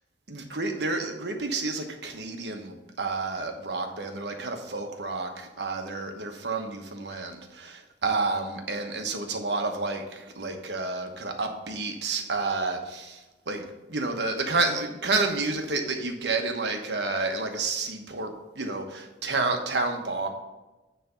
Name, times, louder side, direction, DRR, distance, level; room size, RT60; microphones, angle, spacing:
voice 1, 0.3-20.3, right 3 dB, 70° right, 4 dB, 1.1 m, -30 dB
9.3 x 3.4 x 6.8 m, 1.1 s
head